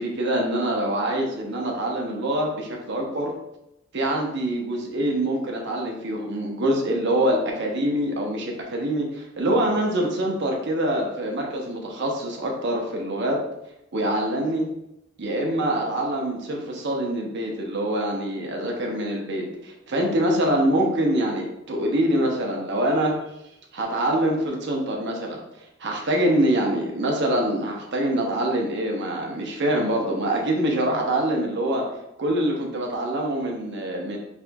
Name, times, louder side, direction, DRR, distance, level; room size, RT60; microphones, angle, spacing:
voice 1, 0.0-3.3 3.9-13.4 13.9-14.7 15.2-23.2 23.7-25.4 25.8-31.8 32.2-34.2, right 1 dB, 60° right, 0 dB, 0.8 m, -25 dB
4.2 x 3.4 x 2.3 m, 0.84 s
head